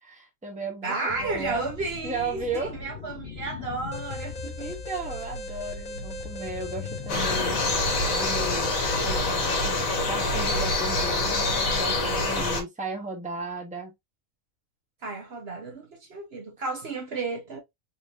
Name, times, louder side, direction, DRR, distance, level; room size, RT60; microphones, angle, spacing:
voice 1, 0.0-1.6 2.0-2.7 4.6-7.6 8.1-8.7 9.0-13.9, right 3 dB, 5° right, 1.0 m, -35 dB
voice 2, 0.8-4.7 15.0-17.6, right 3 dB, 55° right, 1.1 m, -33 dB
sound 1, 1.1-8.7, left 5 dB, 60° left, 0.6 m, -39 dB
Alarm, 3.9-9.2, left 1 dB, 40° left, 1.1 m, -40 dB
sound 2, 7.1-12.6, left 2 dB, 85° left, 1.6 m, -25 dB
4.1 x 3.0 x 2.5 m
omnidirectional pair, 1.4 m